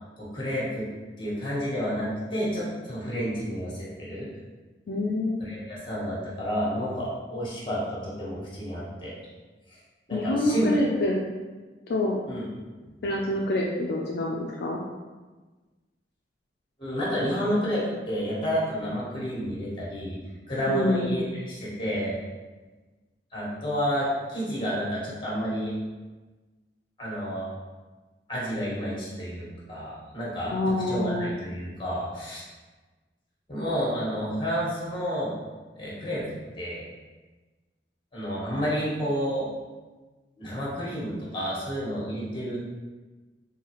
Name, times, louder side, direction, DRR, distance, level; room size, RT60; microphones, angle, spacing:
voice 1, 0.2-0.9 1.2-4.3 5.4-9.1 9.7-9.8 10.1-10.6 12.3-12.5 16.8-20.2 20.5-22.2 23.3-25.7 27.0-27.5 28.3-32.4 33.5-35.3 35.7-36.3 36.6-36.8 38.1-39.5 40.4-42.6, equal, 30° left, -7 dB, 1.3 m, -30 dB
voice 2, 4.9-5.4 10.1-11.2 11.9-12.2 13.0-14.8 20.7-21.2 30.5-31.4, left 1 dB, 65° left, -2 dB, 0.4 m, -26 dB
4.0 x 2.7 x 2.9 m, 1.3 s
head